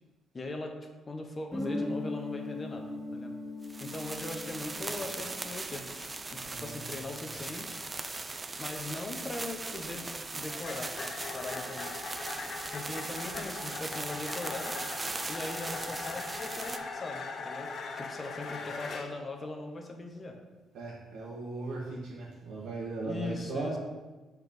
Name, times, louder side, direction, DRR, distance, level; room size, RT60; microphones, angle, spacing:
voice 1, 0.3-0.7 1.1-3.3 3.8-5.9 6.3-7.8 8.6-10.0 10.3-11.9 12.7-14.8 15.3-17.7 17.9-20.4 23.0-23.7, left 2 dB, 30° left, 3 dB, 1.1 m, -40 dB
Guitar, 1.5-6.1, left 2 dB, 10° left, 1.6 m, -39 dB
sound 1, 3.6-16.8, right 3 dB, 25° right, 0.5 m, -39 dB
voice 2, 6.4-7.1 20.7-23.8, right 3 dB, 90° right, -7 dB, 1.5 m, -38 dB
sound 2, 9.8-19.3, left 4 dB, 55° left, 0.7 m, -40 dB
5.7 x 4.6 x 5.4 m, 1.2 s
cardioid pair, 90°, 0 cm